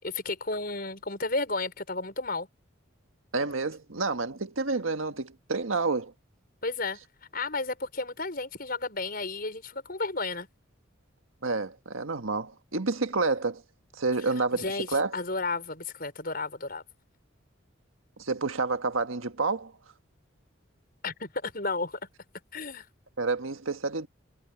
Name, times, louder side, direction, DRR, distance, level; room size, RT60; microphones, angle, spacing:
voice 1, 0.0-2.5 6.6-7.0 7.3-10.5 14.5-16.8 21.0-22.0 22.5-22.9, left 3 dB, 45° left, 5.9 m, -32 dB
voice 2, 3.3-6.1 11.4-13.6 14.0-15.1 18.2-19.7 23.2-24.1, right 3 dB, 85° right, 1.7 m, -29 dB
head